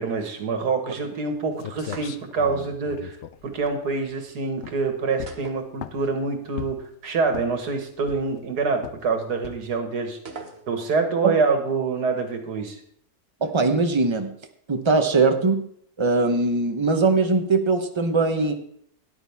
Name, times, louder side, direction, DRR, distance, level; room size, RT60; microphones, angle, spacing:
voice 1, 0.0-3.2 3.4-6.8 7.0-10.2 10.7-12.8, right 4 dB, 80° right, 5 dB, 2.0 m, -26 dB
sound 1, 1.3-1.4 1.6-4.2 4.6-4.9 5.2-6.1 6.6-6.9 7.3-7.7 8.1-8.5 8.8-9.1 9.4-9.8, left 10 dB, 65° left, 0.7 m, -38 dB
sound 2, 1.8-2.6 5.3-6.3 6.6-6.7 10.3-11.1, right 3 dB, 45° right, 1.2 m, -41 dB
voice 2, 13.4-14.3 14.7-15.6 16.0-18.5, right 3 dB, 25° right, 6 dB, 0.8 m, -21 dB
13.0 x 10.5 x 3.5 m, 0.67 s
omnidirectional pair, 1.7 m